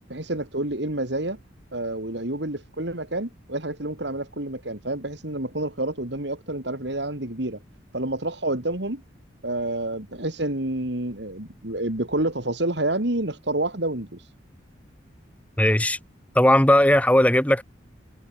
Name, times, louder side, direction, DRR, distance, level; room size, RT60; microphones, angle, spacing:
voice 1, 0.1-1.4 1.7-7.6 7.9-9.0 9.4-14.3, right 1 dB, 65° right, 3.1 m, -28 dB
voice 2, 15.6-16.0 16.4-17.6, left 1 dB, 5° left, 1.7 m, -17 dB
head